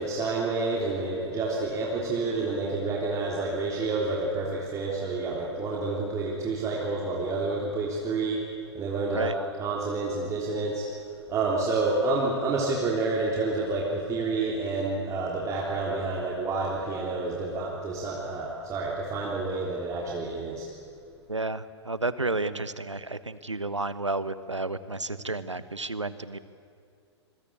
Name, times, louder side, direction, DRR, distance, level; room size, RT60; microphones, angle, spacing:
voice 1, 0.0-8.4 8.7-9.3 9.6-10.9 11.3-20.7, right 3 dB, 20° right, -3 dB, 3.4 m, -29 dB
voice 2, 21.3-26.4, right 2 dB, 90° right, 14 dB, 1.1 m, -31 dB
26.5 x 21.5 x 8.7 m, 2.3 s
figure-of-eight pair, 110°, 15 cm